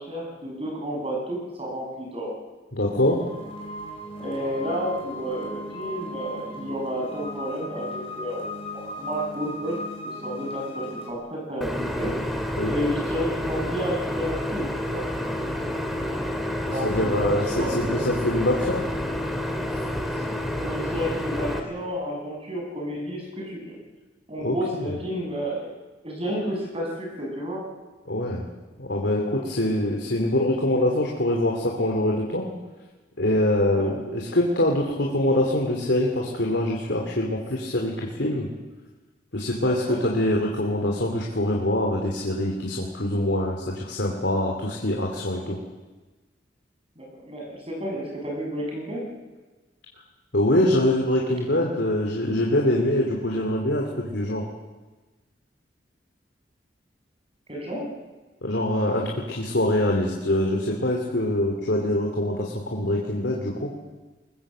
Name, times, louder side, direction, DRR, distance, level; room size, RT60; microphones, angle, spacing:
voice 1, 0.0-2.4 4.2-8.4 8.7-9.8 10.0-12.1 12.7-15.1 16.7-18.0 20.5-23.8 24.3-25.7 26.0-27.7 33.7-33.9 39.6-40.0 47.0-49.1 57.5-57.9, equal, 30° right, 0 dB, 6.6 m, -31 dB
voice 2, 2.7-3.2 12.6-12.8 16.7-18.9 24.4-24.9 28.1-28.5 28.8-32.5 33.2-38.5 39.3-45.6 50.3-54.4 58.4-63.7, left 1 dB, 70° left, -1 dB, 3.0 m, -24 dB
sound 1, 2.9-11.1, equal, 30° left, 5.1 m, -37 dB
sound 2, 11.6-21.6, left 1 dB, ahead, 2.4 m, -29 dB
22.0 x 20.5 x 7.7 m, 1.2 s
head